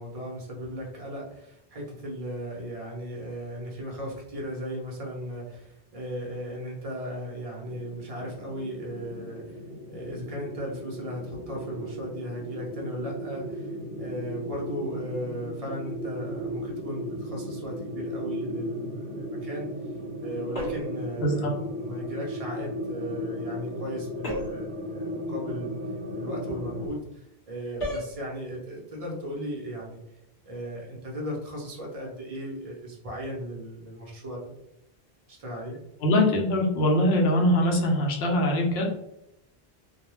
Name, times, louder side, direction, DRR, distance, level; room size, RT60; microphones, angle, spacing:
voice 1, 0.0-9.4 9.9-13.6 14.0-19.7 20.2-21.5 21.8-25.8 26.2-27.0 27.5-30.0 30.4-34.5 35.3-35.8, equal, 40° right, -2 dB, 0.7 m, -36 dB
sound 1, 7.6-26.9, equal, 85° right, 0.8 m, -36 dB
sound 2, 20.5-21.0 24.2-24.7 27.8-28.1, equal, 40° left, 0.9 m, -33 dB
voice 2, 21.2-21.5 36.0-38.9, left 1 dB, 85° left, 1 dB, 0.9 m, -22 dB
2.3 x 2.2 x 3.0 m, 0.79 s
omnidirectional pair, 1.0 m